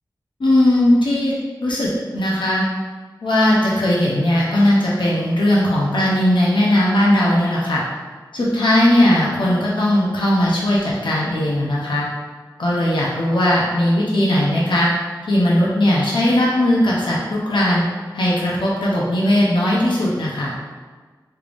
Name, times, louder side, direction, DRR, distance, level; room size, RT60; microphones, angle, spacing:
voice 1, 0.4-1.3 1.6-2.6 3.2-7.8 8.3-12.0 12.6-14.9 15.3-17.8 18.1-20.6, left 1 dB, 80° left, -5 dB, 0.7 m, -18 dB
3.3 x 3.3 x 2.5 m, 1.4 s
wide cardioid pair, 75°, 8 cm